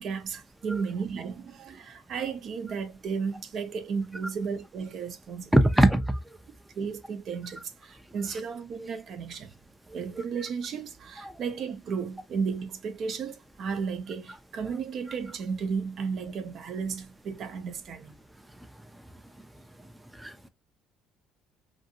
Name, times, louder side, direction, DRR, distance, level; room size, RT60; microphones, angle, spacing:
voice 1, 0.0-5.5 6.7-9.5 9.9-18.2, right 5 dB, 55° right, 0.6 m, -34 dB
voice 2, 5.5-6.2 11.2-11.3 20.1-20.5, right 1 dB, 5° right, 0.5 m, -22 dB
2.7 x 2.6 x 2.7 m
supercardioid pair, 85°, 0 cm